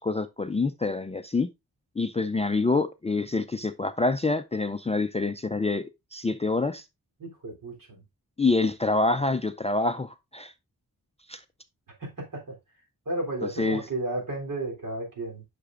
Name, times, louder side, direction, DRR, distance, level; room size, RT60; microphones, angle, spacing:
voice 1, 0.0-1.5 2.0-6.8 8.4-10.5 11.3-11.4 13.4-13.8, left 3 dB, 20° left, 0.4 m, -26 dB
voice 2, 7.2-8.0 12.0-12.5 13.0-15.4, right 2 dB, 60° right, 3.4 m, -33 dB
9.9 x 5.9 x 2.5 m
wide cardioid pair, 120°, 36 cm